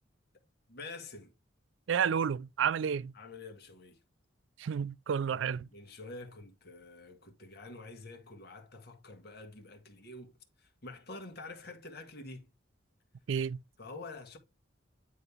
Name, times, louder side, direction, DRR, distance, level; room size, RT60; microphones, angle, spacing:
voice 1, 0.7-1.3 3.1-4.0 5.3-12.5 13.8-14.4, left 3 dB, 55° left, 1.8 m, -47 dB
voice 2, 1.9-3.1 4.6-5.7 13.3-13.6, right 7 dB, 70° right, 0.4 m, -30 dB
9.7 x 4.0 x 3.4 m
head